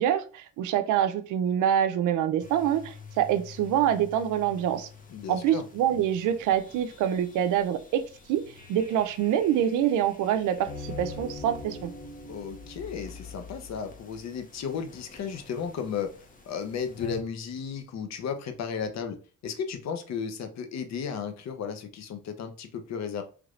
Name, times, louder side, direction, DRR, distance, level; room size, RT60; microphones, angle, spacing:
voice 1, 0.0-4.9 5.3-8.4 8.7-11.9, right 10 dB, 85° right, 0.5 m, -26 dB
sound 1, 2.4-17.2, left 3 dB, 25° left, 0.8 m, -45 dB
voice 2, 5.1-5.6 12.3-16.1 16.5-23.2, left 6 dB, 60° left, 0.7 m, -34 dB
3.2 x 3.1 x 2.5 m
cardioid pair, 90°, 30 cm